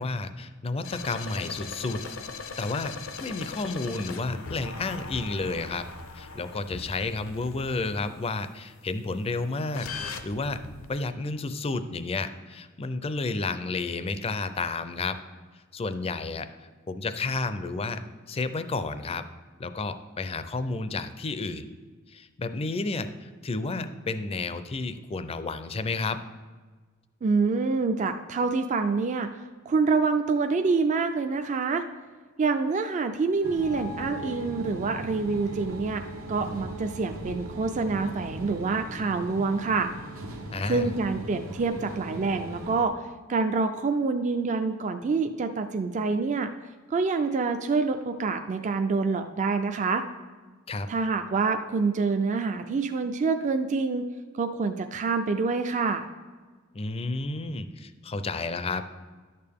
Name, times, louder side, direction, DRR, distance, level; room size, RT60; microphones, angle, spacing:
voice 1, 0.0-2.0 2.6-5.9 6.1-10.6 10.9-15.2 15.7-16.5 16.9-18.0 18.3-19.3 19.6-21.7 22.1-26.2 40.5-40.9 50.7-50.9 56.7-58.9, left 3 dB, 30° left, 11 dB, 0.4 m, -31 dB
sound 1, 0.8-8.3 9.7-10.9, left 4 dB, 75° left, 0.6 m, -39 dB
voice 2, 27.2-31.8 32.4-36.0 36.3-39.9 40.7-42.9 43.3-46.5 46.9-50.0 50.9-54.0 54.3-56.0, right 4 dB, 35° right, 7 dB, 0.4 m, -26 dB
sound 2, 33.4-42.8, right 1 dB, 80° right, 1.0 m, -39 dB
11.0 x 6.7 x 3.5 m, 1.4 s
head